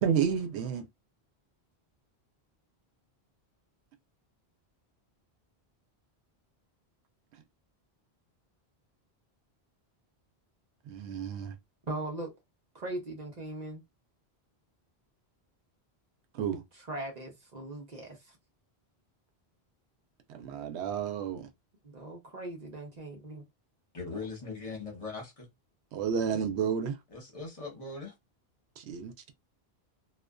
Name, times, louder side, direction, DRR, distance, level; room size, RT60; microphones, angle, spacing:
voice 1, 0.0-0.9 10.9-11.6 16.3-16.6 20.3-21.5 25.9-27.0 28.8-29.3, right 7 dB, 90° right, 0.9 m, -31 dB
voice 2, 11.9-12.3 12.7-13.8 16.9-18.3 21.8-23.4, right 2 dB, 45° right, 0.8 m, -39 dB
voice 3, 23.9-25.5 27.1-28.1, left 4 dB, 35° left, 1.0 m, -40 dB
2.4 x 2.3 x 2.2 m
omnidirectional pair, 1.1 m